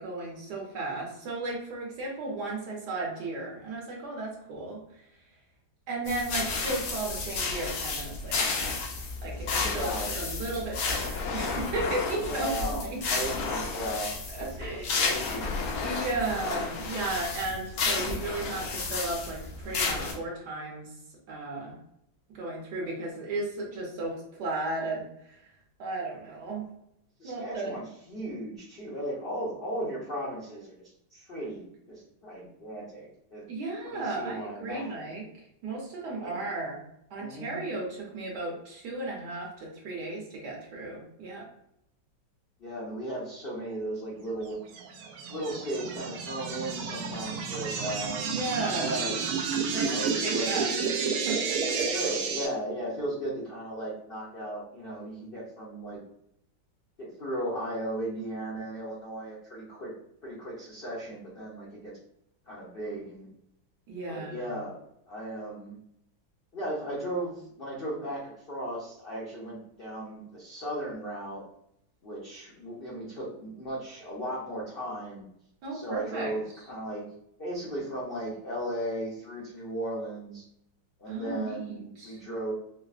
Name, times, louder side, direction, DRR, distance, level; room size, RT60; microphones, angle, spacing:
voice 1, 0.0-4.8 5.9-8.6 9.2-9.9 10.1-13.0 14.3-14.9 15.8-20.9 21.3-21.8 22.3-25.0 25.8-26.7 27.2-27.7 33.5-35.3 35.6-36.8 37.1-41.5 48.2-49.0 49.7-50.7 51.3-51.8 63.9-64.5 75.6-76.3 81.1-82.2, right 2 dB, 65° right, -2 dB, 1.4 m, -34 dB
sound 1, 6.1-20.1, left 4 dB, 85° left, 1.5 m, -32 dB
voice 2, 9.5-10.1 12.2-15.5 27.2-30.8 31.1-33.5 33.8-35.0 36.2-36.4 37.2-37.6 42.6-44.6 45.3-48.4 48.7-49.2 49.5-50.5 51.7-56.0 57.0-59.9 60.2-61.9 62.5-63.3 64.1-65.8 66.5-71.4 72.0-75.2 75.7-77.1 77.4-80.4 81.0-82.5, right 1 dB, 60° left, -6 dB, 0.6 m, -36 dB
sound 2, 44.7-52.5, right 5 dB, 90° right, 0.7 m, -31 dB
4.7 x 2.0 x 2.4 m, 0.75 s
omnidirectional pair, 2.1 m